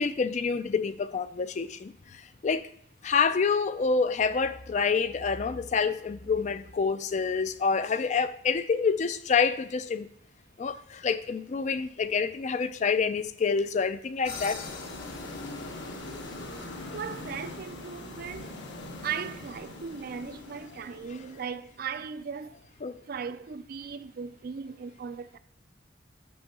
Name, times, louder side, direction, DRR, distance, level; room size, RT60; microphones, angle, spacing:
voice 1, 0.0-2.7 3.0-10.1 10.6-14.6 22.8-22.9, left 5 dB, 40° left, 0.4 m, -27 dB
Desert Monolith, 14.2-21.5, left 2 dB, 70° left, 1.3 m, -41 dB
voice 2, 16.9-18.7 19.0-22.6 23.1-25.4, right 6 dB, 50° right, 0.4 m, -37 dB
6.3 x 5.4 x 6.0 m
head